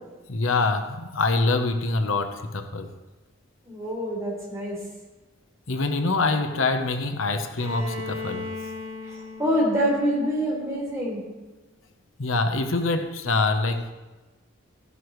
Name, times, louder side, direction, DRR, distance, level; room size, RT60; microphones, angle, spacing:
voice 1, 0.3-2.9 5.7-8.5 12.2-13.9, left 3 dB, 85° left, 7 dB, 0.9 m, -25 dB
voice 2, 3.6-4.8 9.0-11.2, equal, 15° right, -5 dB, 4.4 m, -26 dB
Bowed string instrument, 7.6-11.4, left 3 dB, 50° right, 4.1 m, -38 dB
14.5 x 11.0 x 3.2 m, 1.2 s
head